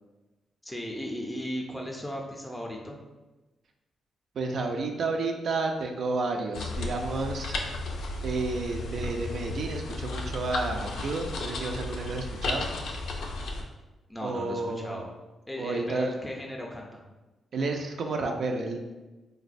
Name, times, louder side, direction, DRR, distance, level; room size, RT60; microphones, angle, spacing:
voice 1, 0.6-3.0 14.1-15.1 15.5-17.0, equal, 10° left, 0 dB, 0.4 m, -36 dB
voice 2, 4.3-7.5 8.2-12.7 14.2-15.0 15.6-16.1 17.5-18.8, right 3 dB, 65° right, 3 dB, 0.3 m, -31 dB
sound 1, 6.5-13.6, left 2 dB, 75° left, 0.4 m, -34 dB
3.9 x 2.1 x 2.5 m, 1.1 s
cardioid pair, 80°, 0 cm